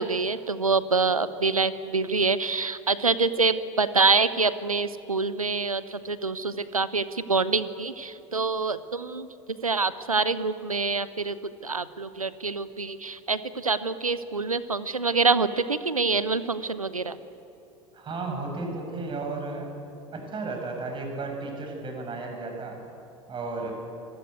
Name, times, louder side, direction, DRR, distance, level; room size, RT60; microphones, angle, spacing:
voice 1, 0.0-11.4 11.6-17.2, right 4 dB, 85° right, 15 dB, 0.9 m, -26 dB
voice 2, 17.9-19.7 20.1-22.8 23.3-23.7, right 3 dB, 30° right, 3 dB, 6.8 m, -33 dB
26.0 x 19.5 x 9.4 m, 2.8 s
figure-of-eight pair, 80°, 18 cm